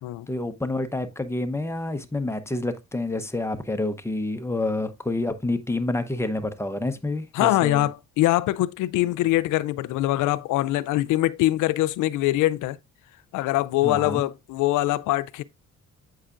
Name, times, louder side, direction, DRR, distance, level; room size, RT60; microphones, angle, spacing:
voice 1, 0.3-7.9 13.8-14.2, left 2 dB, 10° left, 0.8 m, -28 dB
voice 2, 7.3-12.8 13.3-15.4, left 16 dB, 85° left, 0.5 m, -23 dB
8.0 x 5.6 x 2.5 m
cardioid pair, 90°, 30 cm